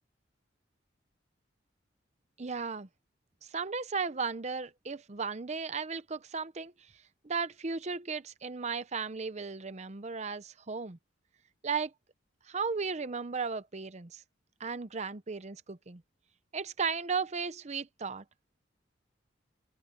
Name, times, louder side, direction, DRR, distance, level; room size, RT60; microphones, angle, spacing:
voice 1, 2.4-2.9 3.4-6.7 7.2-11.0 11.6-11.9 12.5-14.2 14.6-16.0 16.5-18.2, right 5 dB, 35° right, 0.7 m, -35 dB
open air
head